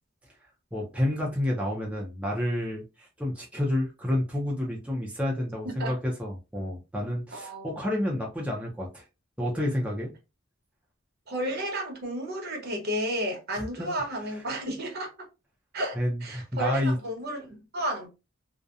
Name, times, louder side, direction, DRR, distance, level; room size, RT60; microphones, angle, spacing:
voice 1, 0.7-9.0 9.4-10.1 13.5-13.9 16.0-17.0, left 1 dB, 5° right, 0.5 m, -29 dB
voice 2, 5.6-6.0 7.3-7.8 11.3-15.1 15.7-18.1, equal, 50° right, 0.9 m, -32 dB
2.7 x 2.1 x 2.4 m
head